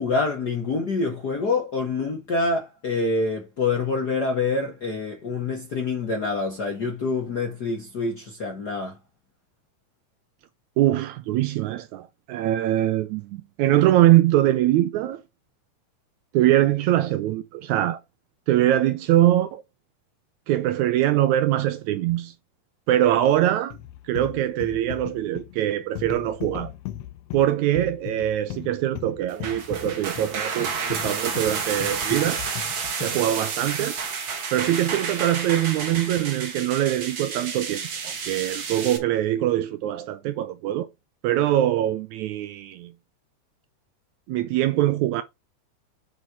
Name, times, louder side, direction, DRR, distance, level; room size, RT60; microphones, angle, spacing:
voice 1, 0.0-9.0, left 3 dB, 55° left, 1.1 m, -26 dB
voice 2, 10.8-15.2 16.3-18.0 18.5-19.6 20.5-22.3 22.9-23.8 24.0-26.7 27.3-32.4 33.0-33.9 34.5-40.9 41.2-42.9 44.3-45.2, right 13 dB, 80° right, 1.8 m, -23 dB
sound 1, 23.7-33.3, left 14 dB, 80° left, 1.6 m, -38 dB
sound 2, 29.3-39.0, right 5 dB, 50° right, 1.6 m, -31 dB
7.7 x 4.2 x 4.6 m
omnidirectional pair, 3.7 m